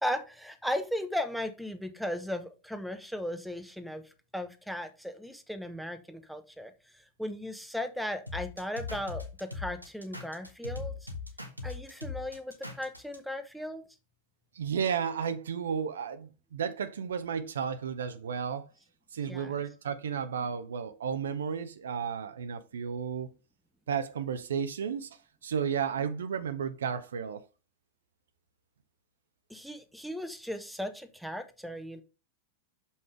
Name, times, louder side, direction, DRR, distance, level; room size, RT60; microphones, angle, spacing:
voice 1, 0.0-4.0 4.3-10.9 11.6-13.8 19.3-19.5 29.5-32.0, left 1 dB, ahead, 0.8 m, -36 dB
sound 1, 8.3-13.2, left 4 dB, 90° right, 1.2 m, -39 dB
voice 2, 14.6-18.7 19.1-23.3 23.9-25.2 25.4-27.4, right 7 dB, 65° right, 0.6 m, -33 dB
6.4 x 5.5 x 3.2 m
figure-of-eight pair, 90°, 0 cm